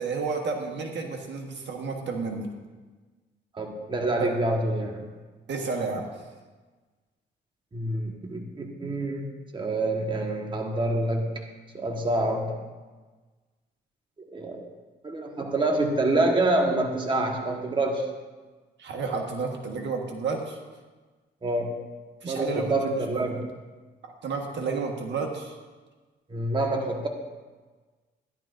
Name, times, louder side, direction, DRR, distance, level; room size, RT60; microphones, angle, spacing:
voice 1, 0.0-2.5 4.2-4.3 5.5-6.0 18.8-20.6 22.2-23.4 24.0-25.6, right 4 dB, 65° right, 2 dB, 1.4 m, -31 dB
voice 2, 3.5-5.1 7.7-9.3 9.5-11.4 11.7-12.6 14.2-14.6 15.0-18.1 21.4-21.7 22.3-23.4 26.3-27.1, right 2 dB, 25° right, 2 dB, 1.4 m, -27 dB
13.5 x 11.0 x 2.6 m, 1.3 s
cardioid pair, 90°, 20 cm